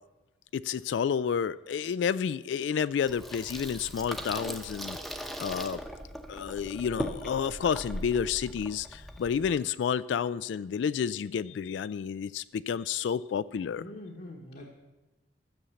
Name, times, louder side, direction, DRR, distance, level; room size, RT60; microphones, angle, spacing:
voice 1, 0.5-5.0 5.4-5.8 6.3-13.9, left 7 dB, 80° left, 0.3 m, -30 dB
Water tap faucet / Sink (filling or washing), 3.1-9.5, equal, ahead, 0.8 m, -39 dB
voice 2, 13.8-14.7, left 1 dB, 55° left, 1.3 m, -43 dB
13.0 x 7.2 x 6.9 m
head